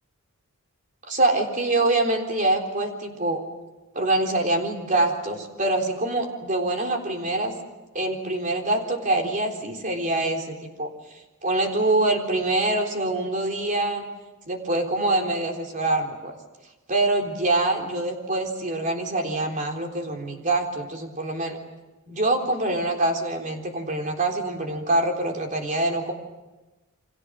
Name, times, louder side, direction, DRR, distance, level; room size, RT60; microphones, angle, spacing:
voice 1, 1.0-3.4 3.9-7.5 7.9-10.9 11.4-14.0 14.5-16.3 16.9-21.6 22.1-26.1, right 2 dB, 35° right, 2 dB, 3.8 m, -25 dB
29.5 x 25.0 x 6.5 m, 1.1 s
head